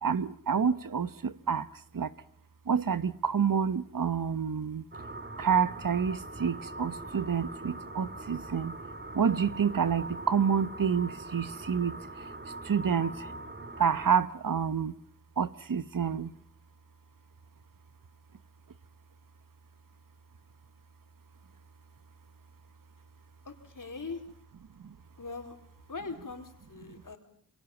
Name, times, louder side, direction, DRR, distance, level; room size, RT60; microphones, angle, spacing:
voice 1, 0.0-1.7 1.9-2.1 2.7-4.8 5.4-8.7 9.1-12.0 12.6-13.3 13.8-14.9 15.4-16.3, right 7 dB, 75° right, 1.2 m, -28 dB
sound 1, 4.9-14.1, right 2 dB, 35° right, 3.0 m, -42 dB
voice 2, 23.4-24.2 25.2-25.5 25.9-27.2, left 4 dB, 70° left, 4.5 m, -41 dB
27.5 x 24.0 x 7.3 m
cardioid pair, 45°, 33 cm